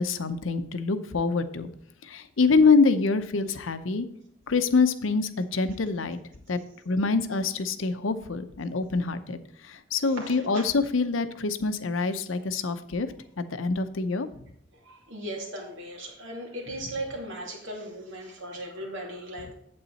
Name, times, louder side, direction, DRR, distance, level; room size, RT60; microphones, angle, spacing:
voice 1, 0.0-1.7 2.0-4.1 4.5-6.2 6.5-6.6 6.9-9.4 9.6-13.1 13.4-14.3 19.5-19.6, left 4 dB, 90° left, 10 dB, 0.7 m, -25 dB
voice 2, 10.2-10.6 14.8-19.5, right 1 dB, 80° right, -1 dB, 2.8 m, -37 dB
8.7 x 7.9 x 4.1 m, 0.69 s
head